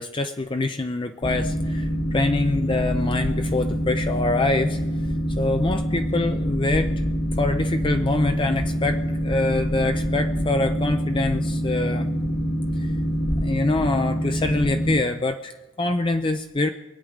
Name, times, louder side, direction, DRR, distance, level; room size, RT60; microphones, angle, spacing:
voice 1, 0.0-4.8 5.4-6.9 7.4-12.1 12.8-12.9 13.4-16.7, left 2 dB, 25° left, 7 dB, 0.5 m, -25 dB
Boat Water vehicle, 1.2-15.0, equal, 50° left, 1.6 m, -25 dB
23.0 x 8.7 x 5.0 m, 1.1 s
head